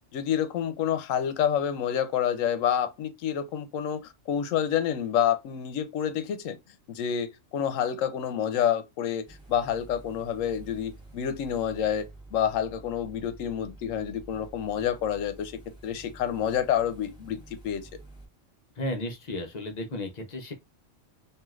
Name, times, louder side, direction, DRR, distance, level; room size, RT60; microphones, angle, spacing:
voice 1, 0.1-6.6 6.9-17.4 17.6-17.9, left 9 dB, 85° left, 1.0 m, -28 dB
sound 1, 9.2-18.3, right 2 dB, 5° right, 0.8 m, -49 dB
voice 2, 18.8-20.5, left 1 dB, 45° left, 0.6 m, -34 dB
3.1 x 2.7 x 2.3 m
omnidirectional pair, 1.3 m